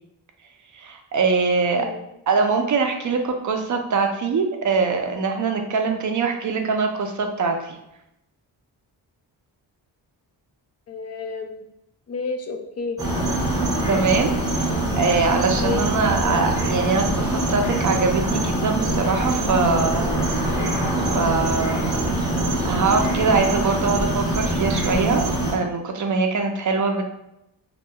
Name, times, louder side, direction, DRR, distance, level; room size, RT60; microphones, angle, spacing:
voice 1, 0.7-1.9 2.3-7.8 13.9-14.7 15.0-20.2 21.1-21.9 22.6-25.3 25.5-27.0, right 4 dB, 40° right, 4 dB, 0.5 m, -23 dB
voice 2, 10.9-11.5 12.1-13.0 15.6-16.4, left 4 dB, 35° left, 4 dB, 0.4 m, -30 dB
sound 1, 13.0-25.5, right 1 dB, 10° right, 0.9 m, -23 dB
2.7 x 2.3 x 2.2 m, 0.85 s
cardioid pair, 50°, 47 cm